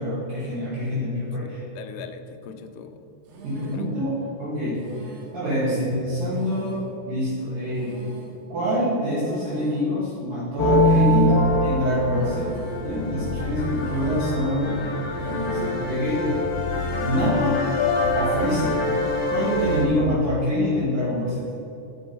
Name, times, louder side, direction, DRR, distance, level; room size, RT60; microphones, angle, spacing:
voice 1, 0.0-1.6 3.4-8.0 8.5-11.4 11.6-12.5 12.8-14.7 15.2-16.3 17.0-17.6 18.1-18.8 19.3-21.4, equal, 55° right, -12 dB, 3.8 m, -26 dB
voice 2, 1.4-3.1 3.6-3.9 14.3-15.0 19.8-20.1, left 8 dB, 85° left, 8 dB, 2.7 m, -41 dB
sound 1, 3.3-4.0 4.8-5.5 6.3-7.0 7.8-8.5 9.3-10.0 10.8-11.5 12.3-13.0 13.7-14.4 15.2-15.9 16.7-17.4, right 4 dB, 75° right, 3.3 m, -43 dB
sound 2, 10.6-19.8, left 1 dB, 65° left, 3.0 m, -24 dB
10.0 x 5.6 x 5.5 m, 2.9 s
omnidirectional pair, 4.8 m